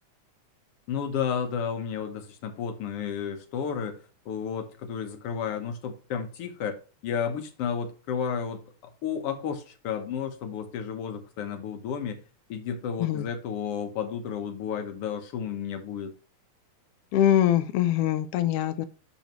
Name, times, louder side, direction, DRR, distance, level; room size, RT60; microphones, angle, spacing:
voice 1, 0.9-4.0 4.2-6.8 7.0-8.7 9.0-12.2 12.5-16.1, left 7 dB, 60° left, 1.8 m, -32 dB
voice 2, 17.1-18.9, left 11 dB, 90° left, 1.3 m, -23 dB
11.5 x 4.1 x 3.0 m
omnidirectional pair, 3.3 m